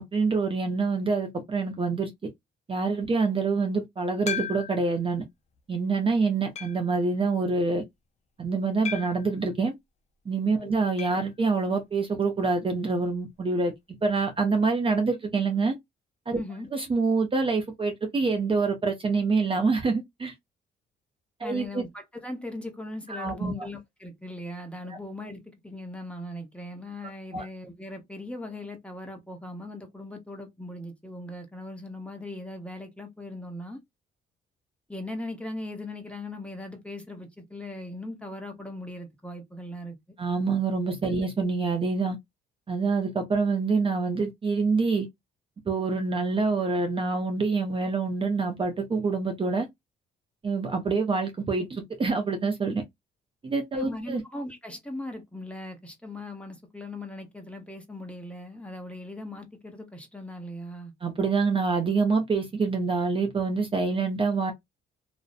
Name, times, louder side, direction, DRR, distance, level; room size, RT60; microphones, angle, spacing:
voice 1, 0.0-2.1 2.7-5.3 5.7-7.8 8.4-9.7 10.3-13.7 14.0-15.7 16.3-16.4 16.7-20.3 21.4-21.8 23.1-23.5 27.3-27.4 40.2-42.2 42.7-45.1 45.7-49.7 50.4-52.8 53.4-54.2 61.0-64.5, right 4 dB, 25° right, 0.5 m, -26 dB
sound 1, 4.3-5.0 5.6-5.7 6.6-7.0 8.9-9.3 11.0-11.3 11.5-11.6 11.9-12.0 14.0-14.1, left 8 dB, 35° left, 0.4 m, -35 dB
voice 2, 16.3-16.7 21.4-33.8 34.9-40.0 41.2-41.3 53.7-60.9, left 1 dB, 5° left, 0.8 m, -39 dB
2.5 x 2.0 x 2.4 m
cardioid pair, 90°, 20 cm